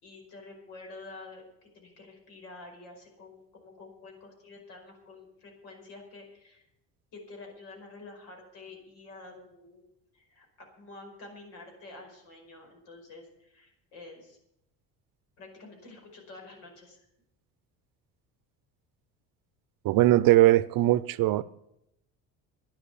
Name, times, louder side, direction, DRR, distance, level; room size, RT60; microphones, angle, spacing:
voice 1, 0.0-6.6 7.1-9.8 10.1-14.4 15.4-17.0, left 3 dB, 80° left, 5.4 m, -48 dB
voice 2, 19.8-21.4, right 16 dB, 60° right, 0.7 m, -20 dB
10.5 x 10.5 x 8.5 m
supercardioid pair, 85°, 40 cm